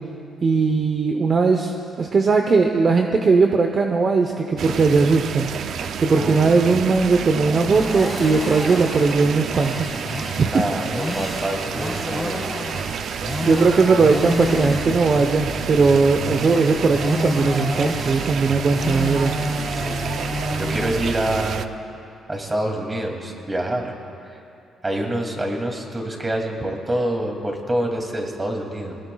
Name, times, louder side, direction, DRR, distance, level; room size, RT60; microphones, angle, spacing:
voice 1, 0.4-1.7 2.0-5.5 6.0-9.9 10.2-10.6 13.4-19.3, right 4 dB, 45° right, 4 dB, 0.8 m, -18 dB
sound 1, 4.6-21.7, right 7 dB, 65° right, 0.5 m, -30 dB
voice 2, 6.1-6.6 10.4-12.7 19.7-20.1 20.6-21.7 22.3-23.9 24.2-24.4 24.8-29.0, right 1 dB, 20° right, 1 dB, 2.5 m, -26 dB
sound 2, 6.9-20.9, left 1 dB, 15° left, 1.9 m, -30 dB
24.0 x 19.0 x 2.3 m, 2.6 s
cardioid pair, 90°, 0 cm